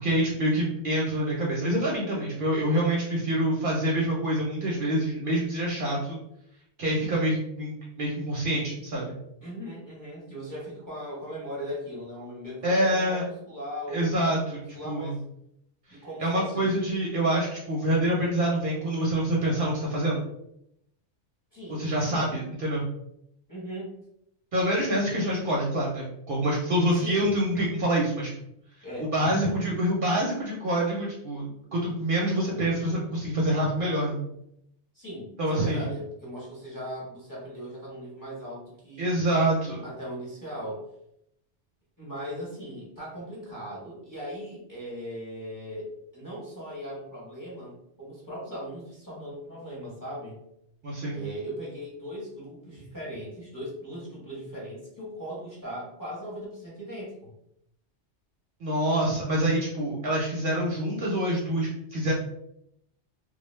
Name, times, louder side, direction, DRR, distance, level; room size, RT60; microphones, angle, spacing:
voice 1, 0.0-6.2 6.8-9.2 12.6-13.2 13.9-14.6 14.8-15.2 15.9-20.2 21.7-22.8 24.5-28.3 29.0-34.2 35.4-35.9 39.0-39.8 50.8-51.2 58.6-62.1, right 1 dB, 55° right, -3 dB, 0.7 m, -26 dB
voice 2, 9.4-15.2 15.9-16.8 21.5-22.3 23.5-23.9 27.0-27.3 28.8-29.6 34.9-39.2 39.8-40.8 42.0-50.4 51.1-57.3, equal, 20° left, -7 dB, 0.9 m, -38 dB
2.3 x 2.1 x 3.1 m, 0.77 s
omnidirectional pair, 1.2 m